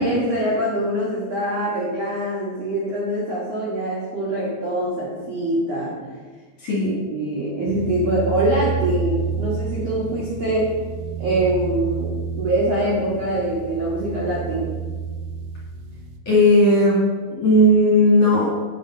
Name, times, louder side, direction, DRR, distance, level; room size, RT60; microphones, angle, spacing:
voice 1, 0.0-6.0 6.8-10.7 11.2-14.7, right 1 dB, 65° right, -6 dB, 1.6 m, -24 dB
voice 2, 6.6-6.9 16.3-17.0 17.3-18.5, left 1 dB, 45° left, -6 dB, 2.6 m, -15 dB
sound 1, 7.7-16.2, right 6 dB, 80° right, 2.8 m, -30 dB
8.6 x 5.3 x 5.4 m, 1.4 s
omnidirectional pair, 5.4 m